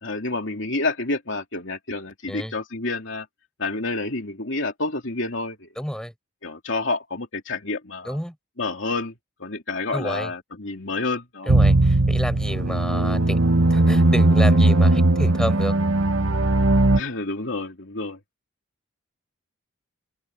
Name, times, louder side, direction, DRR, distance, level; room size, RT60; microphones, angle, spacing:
voice 1, 0.0-3.3 3.6-5.7 6.4-8.2 8.6-9.1 9.4-11.5 16.9-18.2, left 3 dB, 60° left, 3.1 m, -29 dB
voice 2, 5.8-6.1 8.1-8.3 9.9-10.3 11.5-13.4 13.7-15.8, equal, 5° left, 5.1 m, -30 dB
sound 1, 11.5-17.0, right 2 dB, 70° right, 1.4 m, -18 dB
open air
head